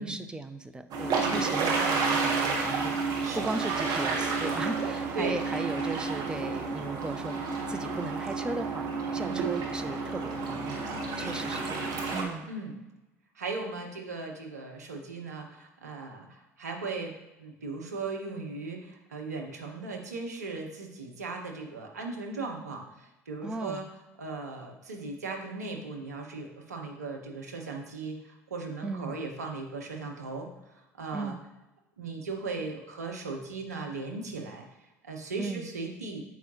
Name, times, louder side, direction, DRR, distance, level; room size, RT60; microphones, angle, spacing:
voice 1, 0.0-7.4 7.7-10.8 11.2-12.5 23.4-23.9 28.8-29.1 31.1-31.4 35.4-35.7, right 2 dB, 10° right, 10 dB, 0.4 m, -37 dB
sound 1, 0.9-12.2, right 4 dB, 50° right, 1.2 m, -30 dB
voice 2, 13.3-17.1 17.4-23.9 24.2-31.4 32.0-34.6 35.0-36.2, right 3 dB, 85° right, 2 dB, 0.8 m, -37 dB
7.1 x 4.7 x 3.0 m, 1.0 s
figure-of-eight pair, 65°, 9 cm